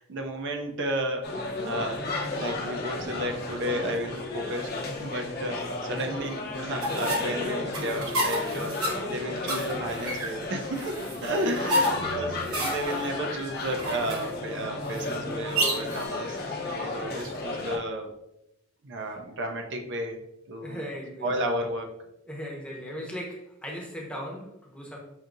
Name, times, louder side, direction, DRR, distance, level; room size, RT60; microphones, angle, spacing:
voice 1, 0.0-8.8 9.1-16.4 16.7-18.1 18.8-20.2 20.5-20.8 21.2-21.9, right 1 dB, 55° right, 4 dB, 0.5 m, -33 dB
sound 1, 1.2-17.8, left 2 dB, 50° left, 0.7 m, -33 dB
voice 2, 5.9-6.3 8.4-8.8 11.2-12.5 17.0-17.4 20.6-21.5 22.3-25.0, equal, 5° left, -2 dB, 0.8 m, -39 dB
sound 2, 6.8-16.1, equal, 90° right, 1.1 m, -31 dB
6.0 x 2.7 x 2.5 m, 0.86 s
head